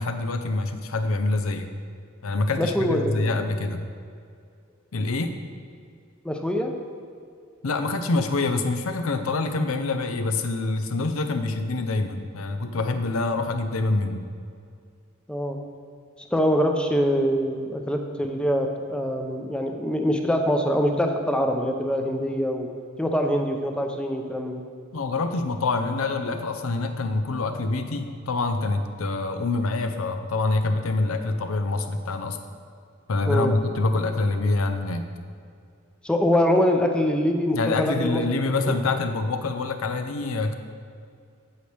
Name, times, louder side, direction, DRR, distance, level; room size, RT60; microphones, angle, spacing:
voice 1, 0.0-1.7 2.2-3.8 4.9-5.4 7.6-14.3 24.9-32.4 33.1-35.1 37.5-40.6, left 3 dB, 85° left, 7 dB, 0.6 m, -26 dB
voice 2, 2.6-3.2 6.2-6.7 15.3-15.6 16.3-22.7 23.0-24.6 33.3-33.6 36.0-38.5, equal, 5° left, 3 dB, 0.6 m, -24 dB
8.2 x 7.8 x 3.4 m, 2.3 s
head